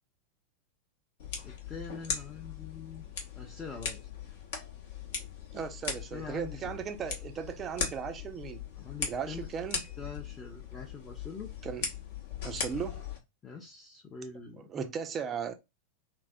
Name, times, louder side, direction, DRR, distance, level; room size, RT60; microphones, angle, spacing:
sound 1, 1.2-13.2, left 6 dB, 55° left, 0.8 m, -39 dB
voice 1, 1.4-3.1 3.4-4.1 6.0-6.7 8.8-9.5 10.0-11.5 13.4-14.7, left 4 dB, 20° left, 0.6 m, -44 dB
voice 2, 5.5-8.6 9.1-9.8 11.6-11.9 12.4-13.0 14.7-15.5, right 7 dB, 25° right, 0.4 m, -37 dB
3.3 x 2.1 x 2.3 m
figure-of-eight pair, 90°, 0 cm